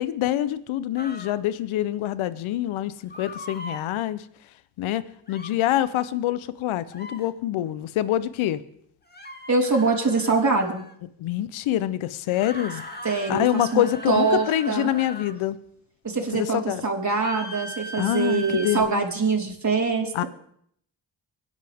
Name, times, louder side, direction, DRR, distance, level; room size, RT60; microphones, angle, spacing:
voice 1, 0.0-4.2 4.8-5.0 5.3-8.6 11.2-12.8 13.3-15.6 16.3-16.8 18.0-19.0 20.1-20.2, left 13 dB, 85° left, 15 dB, 0.9 m, -25 dB
sound 1, 1.0-1.4 3.1-3.9 5.3-5.6 6.9-7.3 9.1-11.0 12.3-15.4 17.2-18.8, equal, 20° left, 2.6 m, -39 dB
voice 2, 9.5-10.8 13.0-14.9 16.0-20.3, right 4 dB, 35° right, -1 dB, 4.6 m, -24 dB
24.5 x 10.5 x 3.6 m, 0.67 s
supercardioid pair, 40°, 47 cm